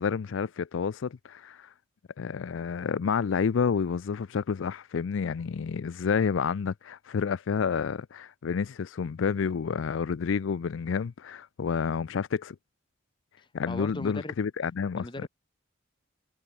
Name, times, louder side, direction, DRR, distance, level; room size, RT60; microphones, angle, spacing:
voice 1, 0.0-1.7 2.2-12.6 13.5-15.1, left 6 dB, 75° left, 0.4 m, -29 dB
voice 2, 13.4-14.3 15.0-15.3, left 1 dB, 25° left, 1.4 m, -38 dB
head